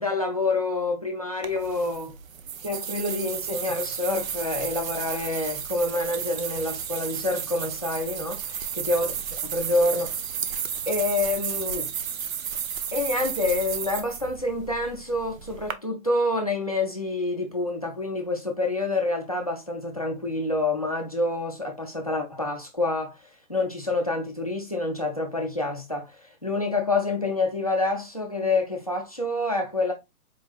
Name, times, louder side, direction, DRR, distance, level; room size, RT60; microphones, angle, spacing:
voice 1, 0.0-2.1 2.6-9.1 9.4-10.1 10.9-11.9 12.9-29.9, left 2 dB, 30° left, 0.4 m, -27 dB
sound 1, 1.4-15.7, right 8 dB, 65° right, 0.7 m, -33 dB
4.3 x 3.5 x 2.3 m
hypercardioid pair, 175°, 43 cm